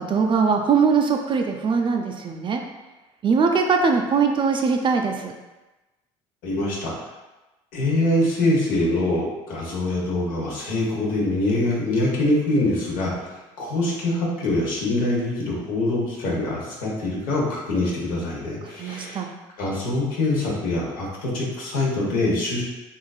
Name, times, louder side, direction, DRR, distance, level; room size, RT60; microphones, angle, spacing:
voice 1, 0.0-2.6 3.2-5.3 18.8-19.3, right 5 dB, 35° right, 3 dB, 0.4 m, -21 dB
voice 2, 6.4-7.0 7.7-13.3 13.6-19.2 19.6-22.6, left 2 dB, 70° left, -4 dB, 1.0 m, -24 dB
3.0 x 2.5 x 2.3 m, 1.1 s
supercardioid pair, 85°, 15 cm